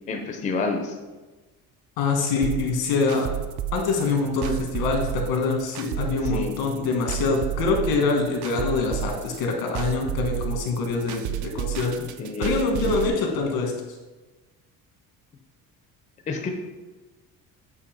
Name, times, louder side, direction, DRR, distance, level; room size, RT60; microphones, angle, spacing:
voice 1, 0.1-1.0 6.2-6.6 12.2-13.1 16.3-16.5, left 4 dB, 20° left, 4 dB, 0.5 m, -29 dB
voice 2, 2.0-3.3 3.7-12.1 12.4-13.7, left 4 dB, 85° left, 1 dB, 1.6 m, -25 dB
sound 1, 2.4-13.1, right 12 dB, 55° right, 0.4 m, -31 dB
8.1 x 2.8 x 5.2 m, 1.2 s
cardioid pair, 175°, 36 cm